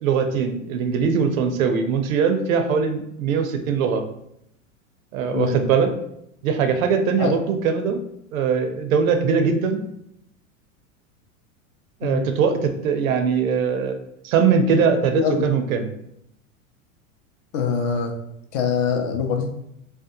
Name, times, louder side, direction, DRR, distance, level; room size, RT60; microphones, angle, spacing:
voice 1, 0.0-4.0 5.1-5.9 6.4-8.0 8.3-9.8 12.0-14.0 14.2-15.9, right 6 dB, 85° right, 7 dB, 0.5 m, -21 dB
voice 2, 15.1-15.5 17.5-18.1 18.5-19.5, left 6 dB, 50° left, 4 dB, 0.6 m, -23 dB
2.7 x 2.1 x 2.5 m, 0.77 s
hypercardioid pair, 100°, 40 cm